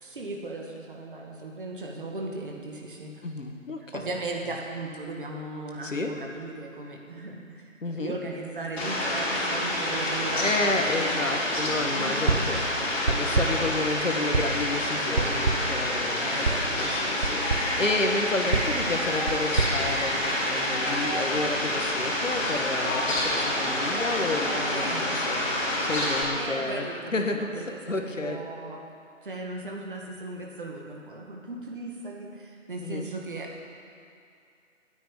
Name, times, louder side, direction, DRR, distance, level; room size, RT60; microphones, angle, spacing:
voice 1, 0.0-3.1 3.9-10.9 11.2-11.4 11.9-12.9 13.6-13.9 16.2-16.9 24.7-25.2 26.3-28.9 29.2-33.6, right 2 dB, 40° right, 0 dB, 1.8 m, -37 dB
voice 2, 3.2-4.1 5.8-6.1 7.8-8.1 10.3-12.6 13.0-28.4 32.8-33.1, left 2 dB, 70° left, 4 dB, 1.7 m, -31 dB
Fowl, 8.8-26.2, left 1 dB, 50° left, 4.1 m, -28 dB
sound 1, 12.3-12.6 13.1-13.7 14.3-14.7 15.2-15.8 16.4-16.7 17.2-17.8 18.5-20.6, right 4 dB, 60° right, 1.4 m, -28 dB
19.0 x 9.2 x 5.0 m, 2.4 s
figure-of-eight pair, 155°, 40 cm